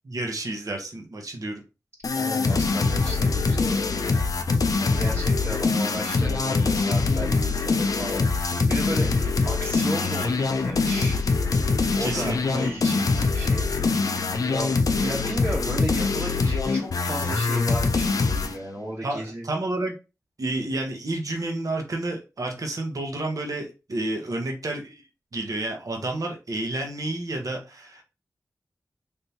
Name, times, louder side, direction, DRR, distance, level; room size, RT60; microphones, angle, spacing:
voice 1, 0.0-1.6 12.0-12.6 19.0-19.9 20.4-25.0 25.3-28.0, right 2 dB, 65° right, 2 dB, 0.9 m, -30 dB
sound 1, 2.0-18.6, left 4 dB, 65° left, 0.4 m, -23 dB
voice 2, 2.2-4.2 4.8-11.2 12.0-13.7 14.5-19.5, right 1 dB, 45° right, -5 dB, 1.2 m, -34 dB
3.5 x 2.7 x 2.8 m, 0.29 s
wide cardioid pair, 60°, 6 cm